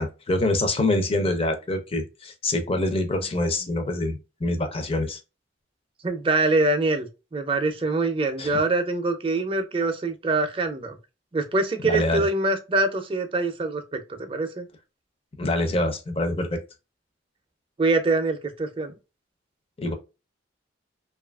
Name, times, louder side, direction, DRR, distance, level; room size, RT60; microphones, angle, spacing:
voice 1, 0.0-5.2 8.4-8.6 11.8-12.3 15.4-16.6 19.8-19.9, left 2 dB, 30° left, 0.6 m, -25 dB
voice 2, 6.0-11.0 11.3-14.7 17.8-19.0, right 2 dB, 30° right, 0.5 m, -24 dB
2.7 x 2.4 x 2.2 m
head